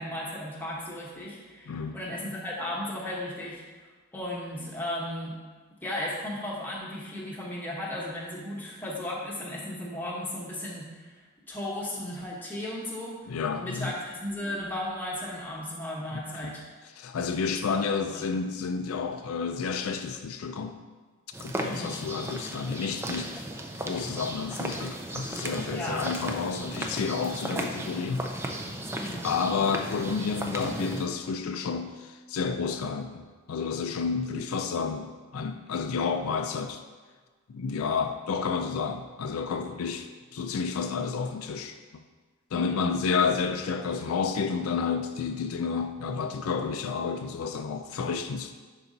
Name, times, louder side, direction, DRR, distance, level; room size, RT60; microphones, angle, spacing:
voice 1, 0.0-3.6 4.1-5.4 5.8-11.1 11.5-13.2 13.6-16.6 17.7-18.4 21.6-22.0 25.7-26.1 29.0-29.3 42.5-42.9, left 1 dB, 10° left, -4 dB, 1.0 m, -35 dB
voice 2, 13.3-13.9 16.4-16.5 17.0-20.8 21.4-23.4 23.8-28.3 29.2-36.8 37.5-40.1 40.3-41.7 42.5-48.5, left 5 dB, 80° left, 7 dB, 0.4 m, -30 dB
sound 1, 21.3-31.0, right 1 dB, 10° right, 0.4 m, -35 dB
10.0 x 4.0 x 2.7 m, 1.4 s
head